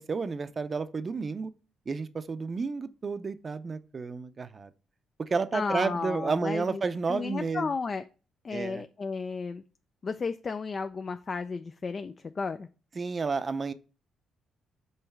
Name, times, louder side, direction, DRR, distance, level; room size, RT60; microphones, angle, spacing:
voice 1, 0.0-1.5 1.9-4.7 5.2-7.7 8.5-8.8 13.0-13.7, right 4 dB, 35° right, 0.6 m, -31 dB
voice 2, 5.5-6.8 7.1-8.0 8.4-9.6 10.0-12.7, left 4 dB, 40° left, 0.4 m, -33 dB
5.6 x 3.9 x 4.5 m
cardioid pair, 90°, 0 cm